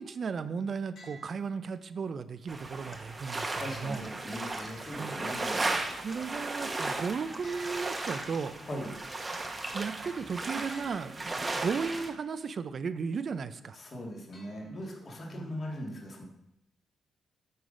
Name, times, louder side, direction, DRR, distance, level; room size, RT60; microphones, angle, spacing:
voice 1, 0.0-4.0 5.0-5.6 6.0-8.5 9.7-13.8 15.2-15.5, right 5 dB, 50° right, 13 dB, 0.4 m, -35 dB
sound 1, 0.9-2.0 4.6-5.7 7.4-8.7 10.7-11.6 14.3-15.2, right 1 dB, 70° left, 2.7 m, -56 dB
sound 2, 2.5-12.1, right 2 dB, 30° right, 1.0 m, -36 dB
sound 3, 2.9-3.0 3.9-4.1 4.5-4.7 5.7-6.3 6.6-6.8 7.3-7.8 8.2-8.4 9.3-9.5, left 1 dB, 10° left, 1.1 m, -47 dB
voice 2, 3.6-6.2 8.6-8.9 13.7-16.2, equal, 40° left, -2 dB, 2.0 m, -40 dB
7.7 x 4.0 x 5.1 m, 0.83 s
cardioid pair, 70°, 0 cm